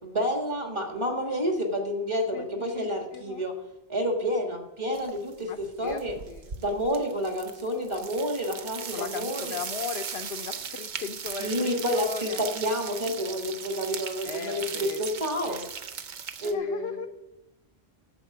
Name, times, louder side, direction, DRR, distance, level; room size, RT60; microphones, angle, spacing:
voice 1, 0.0-3.6 3.9-6.1 6.6-9.6 11.4-15.6 16.4-17.1, equal, 25° right, 3 dB, 1.6 m, -29 dB
voice 2, 2.3-3.5 5.4-6.0 6.3-6.5 8.9-12.4 14.2-15.0 15.5-15.7 16.4-17.1, left 7 dB, 70° left, 5 dB, 0.9 m, -37 dB
sound 1, 4.9-5.3 5.6-16.5, right 7 dB, 50° right, 0.7 m, -38 dB
8.9 x 6.9 x 6.8 m, 0.94 s
omnidirectional pair, 1.1 m